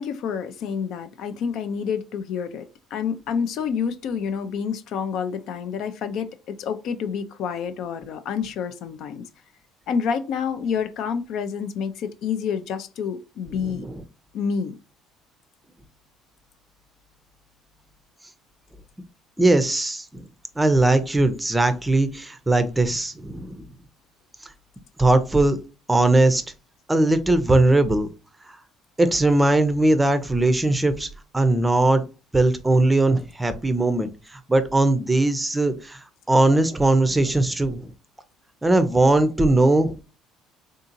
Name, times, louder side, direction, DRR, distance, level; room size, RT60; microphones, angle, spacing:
voice 1, 0.0-9.3 9.9-13.8 14.3-14.8, left 6 dB, 65° left, 0.4 m, -28 dB
voice 2, 13.6-14.0 19.4-20.3 20.6-23.7 25.0-25.6 25.9-26.4 26.9-28.1 28.5-28.6 29.0-31.1 31.3-32.0 32.3-37.9 38.6-39.9, right 2 dB, 10° right, 0.5 m, -20 dB
3.6 x 2.7 x 2.5 m
cardioid pair, 105°, 0 cm